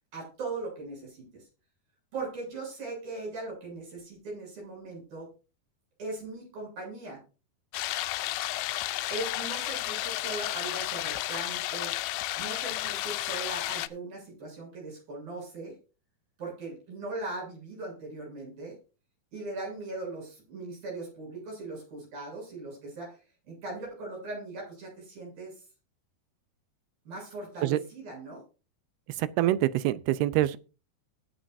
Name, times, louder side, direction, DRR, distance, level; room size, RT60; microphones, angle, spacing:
voice 1, 0.1-1.5 2.1-5.3 6.0-7.2 9.1-11.9 12.4-15.8 16.4-18.8 19.3-23.2 23.5-25.5 27.1-28.4, right 2 dB, 65° right, 9.4 m, -39 dB
sound 1, 7.7-13.9, left 16 dB, 80° left, 2.4 m, -32 dB
voice 2, 29.2-30.6, right 14 dB, 90° right, 2.7 m, -25 dB
20.0 x 7.3 x 2.6 m
omnidirectional pair, 4.4 m